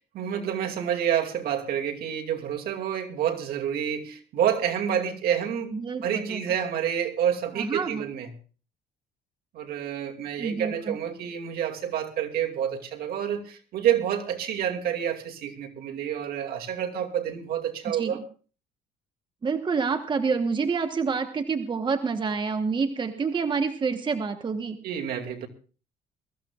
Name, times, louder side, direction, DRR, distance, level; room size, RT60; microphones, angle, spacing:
voice 1, 0.1-5.7 6.0-8.3 9.5-18.2 24.8-25.5, right 9 dB, 65° right, 3 dB, 2.4 m, -28 dB
voice 2, 5.7-6.4 7.6-8.0 10.4-11.0 17.9-18.2 19.4-24.8, right 5 dB, 30° right, 7 dB, 1.1 m, -28 dB
22.5 x 14.0 x 2.4 m, 0.37 s
cardioid pair, 110°, 17 cm